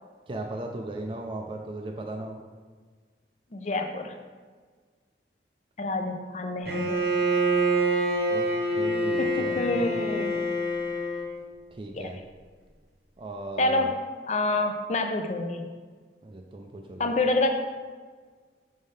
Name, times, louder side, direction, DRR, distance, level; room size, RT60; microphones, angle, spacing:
voice 1, 0.3-2.4 8.3-10.0 11.7-12.2 13.2-13.9 16.2-17.1, right 1 dB, 30° right, 2 dB, 0.4 m, -37 dB
voice 2, 3.5-4.2 5.8-7.0 9.2-10.5 11.9-12.1 13.6-14.0 14.3-15.7 17.0-17.5, left 2 dB, 40° left, 5 dB, 0.4 m, -27 dB
Bowed string instrument, 6.7-11.4, right 1 dB, 60° right, 0.8 m, -26 dB
5.5 x 5.3 x 3.3 m, 1.5 s
head